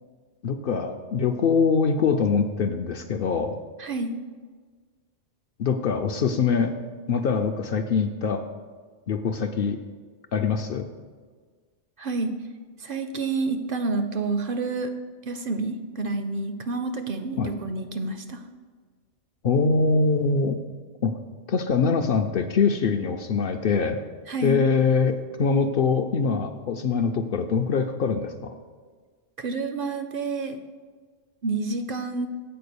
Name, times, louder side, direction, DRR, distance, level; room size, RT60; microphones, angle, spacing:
voice 1, 0.4-3.6 5.6-6.7 7.1-8.4 9.1-9.8 10.3-10.9 17.4-17.5 19.4-20.6 21.0-21.2 21.5-24.0 24.4-28.5, left 5 dB, 60° left, 6 dB, 0.6 m, -23 dB
voice 2, 3.8-4.1 12.0-12.3 12.8-14.9 15.3-18.4 24.3-24.6 29.4-30.6 31.4-32.3, right 3 dB, 60° right, 8 dB, 0.7 m, -29 dB
7.8 x 4.6 x 6.7 m, 1.5 s
omnidirectional pair, 1.2 m